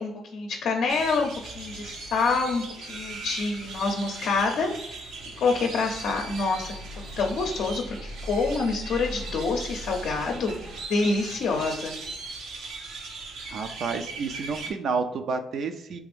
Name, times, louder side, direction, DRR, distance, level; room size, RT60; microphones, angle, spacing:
voice 1, 0.0-4.7 5.4-6.8 7.2-10.6 10.9-11.9, left 4 dB, 70° left, 1 dB, 0.6 m, -27 dB
sound 1, 0.9-14.7, right 2 dB, 85° right, 0.8 m, -38 dB
voice 2, 13.5-16.0, right 4 dB, 65° right, 7 dB, 0.4 m, -30 dB
3.4 x 2.5 x 3.3 m, 0.82 s
cardioid pair, 90°, 0 cm